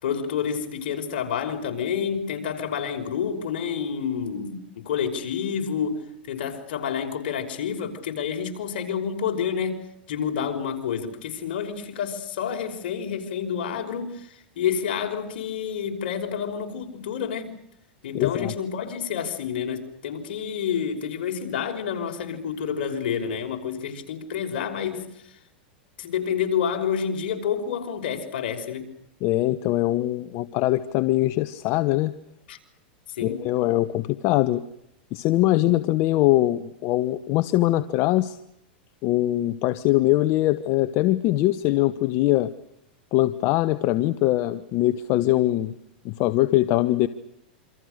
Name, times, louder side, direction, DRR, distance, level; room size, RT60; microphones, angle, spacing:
voice 1, 0.0-9.8 10.1-17.5 18.0-25.4 26.0-28.9 32.5-32.6 33.1-33.4 35.6-35.8, left 7 dB, 70° left, 5.6 m, -29 dB
voice 2, 18.1-18.5 29.2-32.2 33.2-34.6 35.1-38.4 39.0-42.5 43.1-45.7 46.0-47.1, left 16 dB, 45° left, 1.2 m, -22 dB
28.0 x 26.0 x 6.7 m
hypercardioid pair, 125°, 6 cm